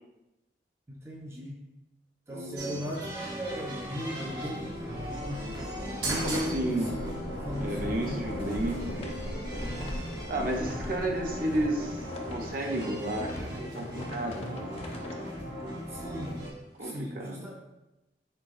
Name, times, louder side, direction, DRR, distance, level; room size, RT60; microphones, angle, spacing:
voice 1, 0.9-1.6 2.3-5.5 6.0-7.2 7.4-8.3 15.9-16.5 16.8-17.5, equal, 15° right, -1 dB, 0.4 m, -38 dB
voice 2, 2.3-2.8 6.0-6.9 7.6-9.1 10.3-14.7 16.8-17.5, right 1 dB, 55° right, 1 dB, 0.7 m, -32 dB
sound 1, 2.6-16.5, equal, 80° right, 1.2 m, -38 dB
sound 2, 2.7-4.9 5.3-5.4 5.7-16.9, left 1 dB, 35° left, 0.6 m, -44 dB
sound 3, 3.5-12.5, left 1 dB, 80° left, 1.1 m, -40 dB
4.4 x 4.1 x 2.4 m, 0.98 s
head